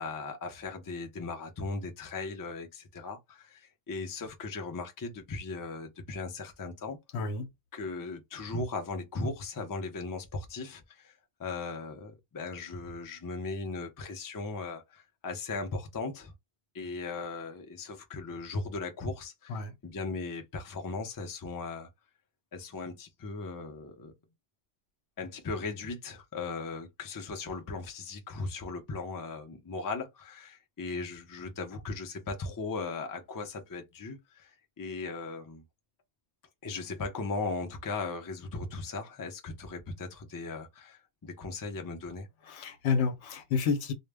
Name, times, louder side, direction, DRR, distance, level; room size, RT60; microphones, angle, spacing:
voice 1, 0.0-7.0 7.7-11.1 11.4-16.3 16.7-21.9 22.5-24.1 25.2-34.5 34.8-35.6 36.6-42.3, left 3 dB, 30° left, 0.3 m, -38 dB
voice 2, 7.1-7.5 19.5-19.7 42.5-43.9, left 5 dB, 80° left, 0.9 m, -30 dB
2.1 x 2.0 x 3.3 m
omnidirectional pair, 1.1 m